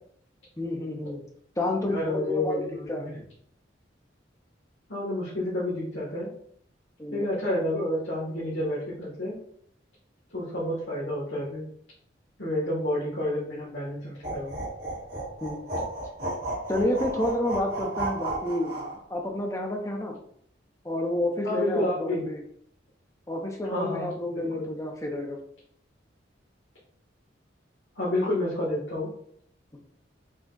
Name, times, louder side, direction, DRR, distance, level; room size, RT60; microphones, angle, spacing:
voice 1, 0.6-1.2 1.6-3.1 7.0-7.2 15.4-15.6 16.7-20.1 20.8-22.4 23.3-25.4, left 1 dB, 15° left, 2 dB, 0.7 m, -29 dB
voice 2, 1.9-3.1 4.9-6.3 7.1-9.4 10.3-11.6 12.4-14.6 21.4-22.2 23.7-24.7 27.9-29.1, left 1 dB, 80° left, -7 dB, 1.4 m, -30 dB
sound 1, 14.2-19.0, right 2 dB, 60° right, 1.7 m, -33 dB
5.0 x 2.3 x 3.8 m, 0.65 s
head